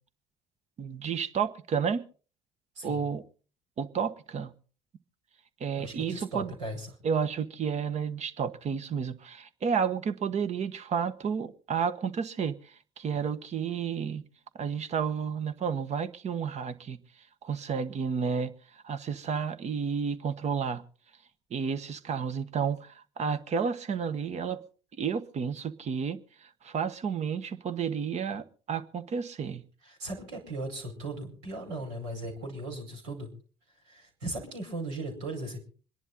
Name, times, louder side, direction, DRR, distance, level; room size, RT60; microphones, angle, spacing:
voice 1, 0.8-2.0 2.8-3.2 3.8-4.5 5.6-6.5 7.0-14.2 14.5-17.0 17.4-20.8 21.5-24.6 25.0-29.6, right 6 dB, 50° right, 1.3 m, -31 dB
voice 2, 5.8-6.9 29.8-33.3 33.9-35.6, right 2 dB, 80° right, 5.1 m, -37 dB
26.0 x 11.0 x 3.9 m
hypercardioid pair, 55°, 15 cm